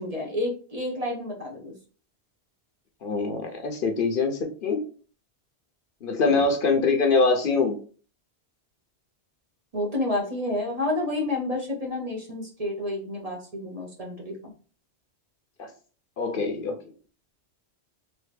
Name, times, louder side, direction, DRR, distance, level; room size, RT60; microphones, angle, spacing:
voice 1, 0.0-1.7 6.2-6.5 9.7-14.5, left 1 dB, 40° right, -1 dB, 0.9 m, -30 dB
voice 2, 3.0-4.8 6.0-7.8 15.6-15.7 16.2-16.7, left 4 dB, 60° left, 4 dB, 0.8 m, -23 dB
3.2 x 2.6 x 3.2 m, 0.40 s
omnidirectional pair, 1.1 m